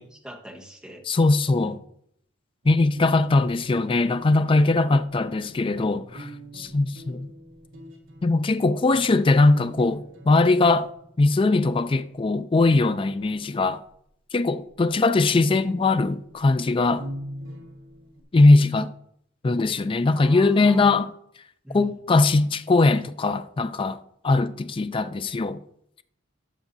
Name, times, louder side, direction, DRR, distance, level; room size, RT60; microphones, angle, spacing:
voice 1, 0.0-1.0 1.5-1.8 20.2-21.0 21.6-21.9, equal, 5° right, 1.0 m, -39 dB
voice 2, 1.1-1.8 2.7-6.3 6.5-7.3 8.2-10.9 11.2-13.8 14.3-17.1 18.3-18.9 19.4-21.1 21.7-24.0 24.2-25.6, left 3 dB, 25° left, 0.3 m, -20 dB
sound 1, 2.6-11.7 15.2-18.2, right 1 dB, 85° right, 1.5 m, -43 dB
12.5 x 7.0 x 2.6 m
head